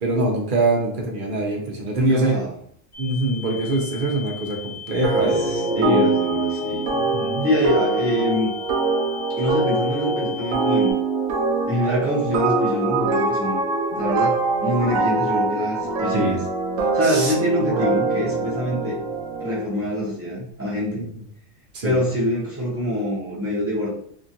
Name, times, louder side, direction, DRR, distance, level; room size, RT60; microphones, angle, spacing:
voice 1, 0.0-2.4 3.0-6.1 6.9-7.5 16.1-16.4 17.0-17.3 21.0-21.1 21.7-22.0, right 2 dB, 55° right, 0 dB, 0.6 m, -24 dB
voice 2, 2.0-2.6 5.2-6.9 7.4-8.5 9.4-11.0 11.7-13.6 13.9-16.4 16.8-19.0 19.4-21.1 21.8-23.9, equal, 15° right, -6 dB, 0.6 m, -25 dB
sound 1, 2.9-10.9, left 9 dB, 75° left, 1.4 m, -38 dB
sound 2, 5.0-19.6, right 3 dB, 85° right, 1.0 m, -23 dB
2.9 x 2.4 x 2.7 m, 0.63 s
omnidirectional pair, 1.4 m